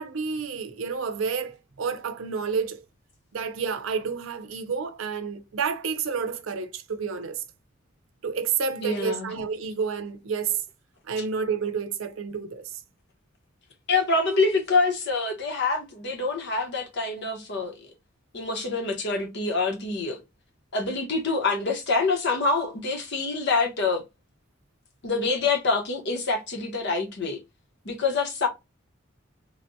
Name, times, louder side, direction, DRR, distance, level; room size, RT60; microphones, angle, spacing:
voice 1, 0.0-2.8 3.3-7.4 8.2-10.6 11.1-12.8, right 5 dB, 85° right, 0.5 m, -30 dB
voice 2, 8.8-9.3 13.9-17.8 18.3-20.2 20.7-24.0 25.0-27.4 27.8-28.5, left 3 dB, 60° left, 1.0 m, -26 dB
3.2 x 2.2 x 2.6 m
head